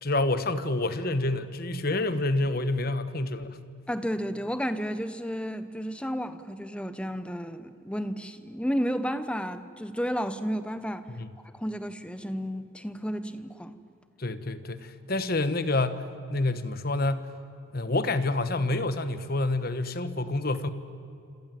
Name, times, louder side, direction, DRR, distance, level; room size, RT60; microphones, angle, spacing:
voice 1, 0.0-3.6 11.2-11.3 14.2-17.3 17.7-20.7, left 2 dB, 45° left, 1.3 m, -28 dB
voice 2, 3.9-11.0 11.5-13.8, equal, 5° left, 0.9 m, -32 dB
27.5 x 27.0 x 7.8 m
head